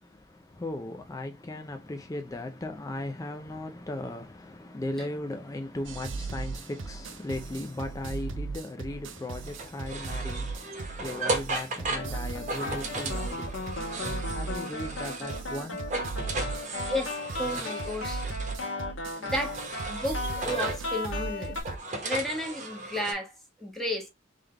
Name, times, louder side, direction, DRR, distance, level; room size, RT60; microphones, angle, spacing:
voice 1, 0.0-13.9 14.3-15.8, left 1 dB, 20° left, 0.4 m, -37 dB
sound 1, 5.8-21.8, right 4 dB, 70° right, 0.6 m, -38 dB
sound 2, 9.5-15.5 15.8-18.6 19.2-20.9 21.4-23.1, right 3 dB, 40° right, 1.2 m, -36 dB
sound 3, 11.9-21.6, left 2 dB, 80° left, 1.5 m, -36 dB
voice 2, 16.8-18.2 19.1-19.6 19.9-21.6 22.0-23.3 23.6-24.1, left 1 dB, ahead, 1.3 m, -33 dB
3.7 x 3.4 x 3.3 m
head